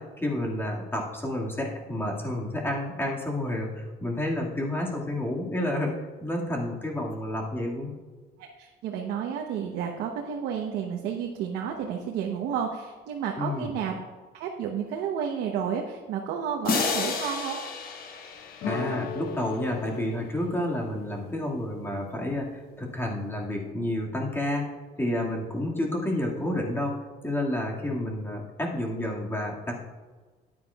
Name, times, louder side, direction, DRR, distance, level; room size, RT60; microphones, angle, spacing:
voice 1, 0.0-5.9 6.2-7.9 13.4-13.7 18.7-26.9 27.2-29.8, left 1 dB, 15° left, -2 dB, 2.0 m, -30 dB
voice 2, 8.4-14.0 14.3-17.6, right 7 dB, 85° right, 1 dB, 1.0 m, -31 dB
sound 1, 16.6-19.5, left 5 dB, 60° left, 1.3 m, -31 dB
sound 2, 18.6-23.5, left 4 dB, 80° left, 0.9 m, -39 dB
12.5 x 9.6 x 2.4 m, 1.4 s
cardioid pair, 110°, 17 cm